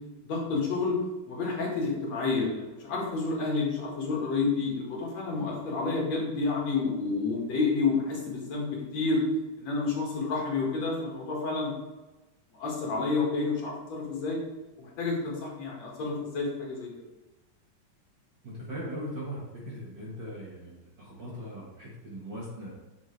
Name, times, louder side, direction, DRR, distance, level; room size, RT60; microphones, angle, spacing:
voice 1, 0.2-1.0 1.3-9.2 9.6-11.8 12.5-14.4 14.8-16.9, left 4 dB, 60° left, -3 dB, 3.0 m, -29 dB
voice 2, 18.4-22.7, equal, 45° right, -5 dB, 1.7 m, -39 dB
9.9 x 6.9 x 3.3 m, 1.1 s
omnidirectional pair, 3.6 m